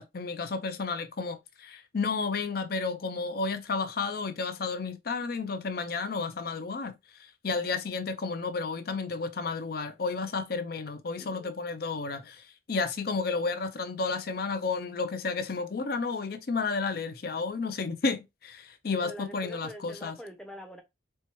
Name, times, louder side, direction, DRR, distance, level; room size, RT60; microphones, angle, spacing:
voice 1, 0.0-20.1, left 4 dB, 50° left, 0.5 m, -32 dB
voice 2, 11.2-11.5 19.0-20.8, equal, 5° left, 0.6 m, -44 dB
4.4 x 2.2 x 3.0 m
head